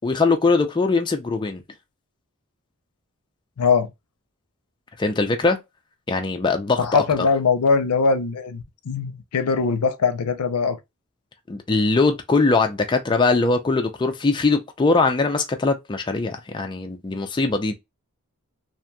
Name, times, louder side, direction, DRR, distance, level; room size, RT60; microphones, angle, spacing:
voice 1, 0.0-1.6 5.0-5.6 6.1-7.0 11.5-17.7, left 3 dB, 20° left, 0.4 m, -21 dB
voice 2, 3.6-3.9 6.8-10.8, left 5 dB, 90° left, 0.5 m, -21 dB
2.8 x 2.5 x 2.2 m
head